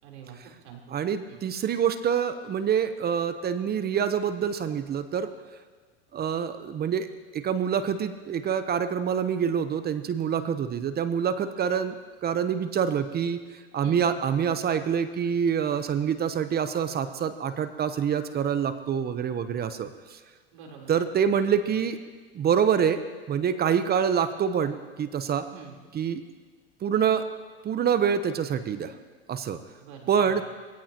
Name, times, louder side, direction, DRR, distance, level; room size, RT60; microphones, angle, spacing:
voice 1, 0.0-0.8 1.3-1.4 13.8-14.2 20.5-20.9 25.5-25.8 29.8-30.4, right 6 dB, 75° right, 0 dB, 3.9 m, -45 dB
voice 2, 0.9-5.3 6.1-7.1 7.3-12.0 12.2-20.2 20.9-22.0 22.3-23.0 23.3-25.5 25.9-26.2 26.8-27.3 27.6-28.9 29.3-29.6 30.1-30.5, right 8 dB, 30° right, 11 dB, 0.9 m, -26 dB
23.0 x 17.0 x 3.0 m, 1.5 s
hypercardioid pair, 105°, 33 cm